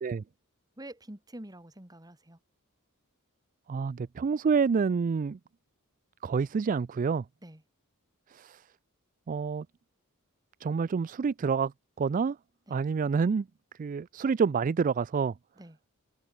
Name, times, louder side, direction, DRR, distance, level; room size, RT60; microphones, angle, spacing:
voice 1, 0.8-2.4 7.4-7.6 12.7-12.8 15.6-15.8, right 1 dB, 15° right, 2.0 m, -46 dB
voice 2, 3.7-5.4 6.2-7.3 8.3-8.7 9.3-9.7 10.6-12.4 12.7-13.5 13.8-15.4, right 5 dB, 40° right, 0.3 m, -28 dB
head